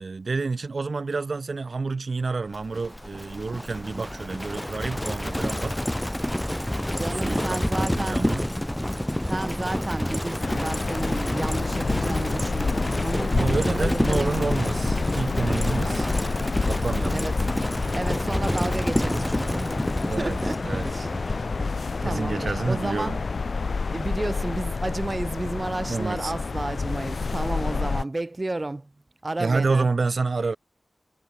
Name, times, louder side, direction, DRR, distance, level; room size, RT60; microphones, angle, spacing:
voice 1, 0.0-5.8 7.2-8.5 13.3-16.1 16.6-17.2 20.1-20.4 20.6-21.1 21.4-21.5 22.0-23.2 25.9-26.3 29.4-30.6, right 4 dB, 60° right, 1.0 m, -29 dB
Livestock farm animals working animals, 2.5-22.2, left 1 dB, 10° left, 0.4 m, -28 dB
voice 2, 6.9-8.3 9.3-14.3 15.8-16.0 17.1-17.3 17.9-19.7 20.2-20.6 20.9-21.0 22.0-23.2 23.9-28.9 29.2-29.9, right 2 dB, 30° right, 1.3 m, -32 dB
sound 1, 10.4-28.0, left 4 dB, 65° left, 1.0 m, -29 dB
wide cardioid pair, 105°, 0 cm